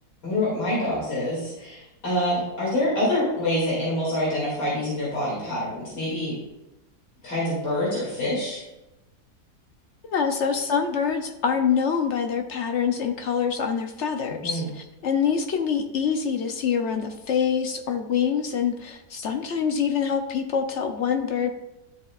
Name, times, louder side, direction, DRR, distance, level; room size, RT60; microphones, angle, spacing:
voice 1, 0.2-6.4 7.2-8.6 14.4-14.7, left 1 dB, 85° left, -7 dB, 3.1 m, -26 dB
voice 2, 10.0-21.5, left 7 dB, 60° left, 6 dB, 0.8 m, -25 dB
12.0 x 6.6 x 2.4 m, 0.95 s
omnidirectional pair, 1.8 m